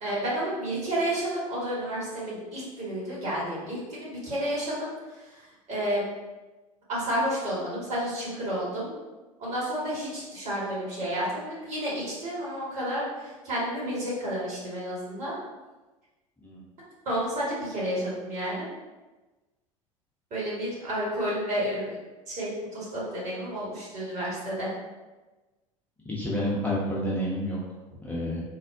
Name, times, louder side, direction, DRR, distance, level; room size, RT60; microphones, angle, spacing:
voice 1, 0.0-5.2 5.7-6.0 6.9-8.9 9.4-15.3 17.0-18.7 20.3-22.0 22.3-24.7, equal, 40° right, -7 dB, 1.4 m, -31 dB
voice 2, 26.1-27.6 28.0-28.4, equal, 10° left, -7 dB, 0.5 m, -29 dB
3.4 x 2.0 x 2.5 m, 1.2 s
figure-of-eight pair, 70°, 18 cm